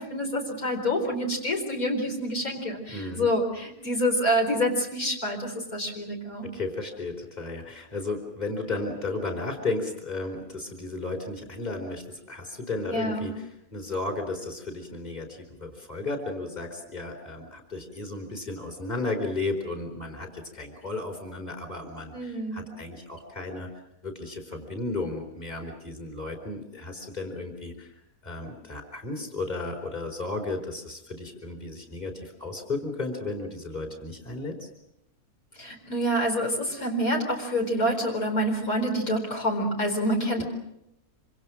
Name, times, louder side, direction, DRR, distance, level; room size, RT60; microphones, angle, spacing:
voice 1, 0.0-6.5 12.9-13.3 22.1-22.7 35.6-40.4, equal, 70° left, 2 dB, 4.7 m, -27 dB
voice 2, 2.9-3.3 6.4-13.3 13.7-23.7 24.0-27.9 28.2-34.7 40.4-40.5, left 2 dB, 25° left, 3 dB, 4.3 m, -34 dB
26.5 x 26.5 x 6.3 m, 0.83 s
omnidirectional pair, 1.5 m